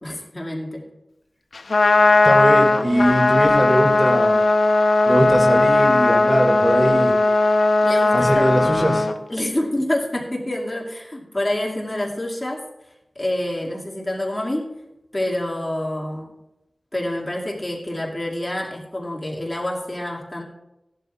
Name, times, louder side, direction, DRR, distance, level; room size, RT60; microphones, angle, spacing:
voice 1, 0.0-0.9 7.8-8.5 9.3-12.6 13.2-14.7 15.1-16.3 16.9-20.4, left 1 dB, 25° left, -2 dB, 2.3 m, -27 dB
Trumpet, 1.5-9.1, left 2 dB, 80° left, 0.7 m, -17 dB
voice 2, 2.2-4.4 5.0-7.1 8.1-9.1, right 1 dB, 25° right, 2 dB, 2.1 m, -21 dB
17.5 x 11.5 x 2.4 m, 0.91 s
wide cardioid pair, 70°, 0 cm